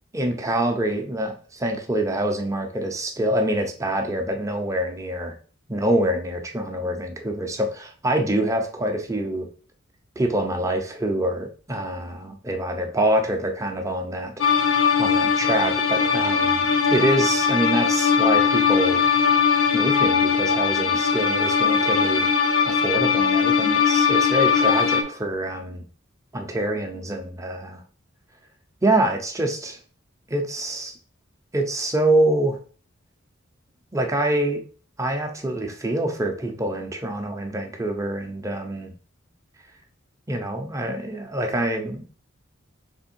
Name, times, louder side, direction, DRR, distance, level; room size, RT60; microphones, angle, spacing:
voice 1, 0.1-5.3 5.7-9.5 10.2-14.3 15.0-19.0 19.7-22.3 22.7-25.8 26.3-27.8 28.8-29.8 30.3-30.9 31.5-32.6 33.9-34.6 35.0-38.9 40.3-42.1, right 1 dB, 15° right, 4 dB, 0.6 m, -25 dB
sound 1, 14.4-25.0, left 6 dB, 85° left, 0.7 m, -20 dB
3.5 x 3.2 x 4.4 m, 0.41 s
head